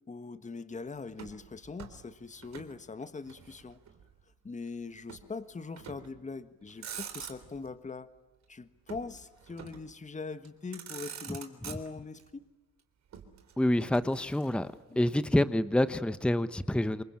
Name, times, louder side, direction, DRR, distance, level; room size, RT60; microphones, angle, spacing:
voice 1, 0.1-3.8 4.4-8.1 8.5-12.4 14.9-15.0, left 4 dB, 25° left, 12 dB, 1.5 m, -42 dB
Motor vehicle (road), 1.1-2.8 3.0-4.1 5.1-5.3 5.8-6.2 6.6-7.7 8.9-9.9 10.4-10.5 10.7-12.2 13.1-14.8, right 8 dB, 65° right, 3.8 m, -46 dB
voice 2, 13.6-14.7 15.0-17.0, left 1 dB, 5° left, 13 dB, 1.0 m, -27 dB
27.5 x 23.0 x 8.8 m, 1.1 s
cardioid pair, 90°, 30 cm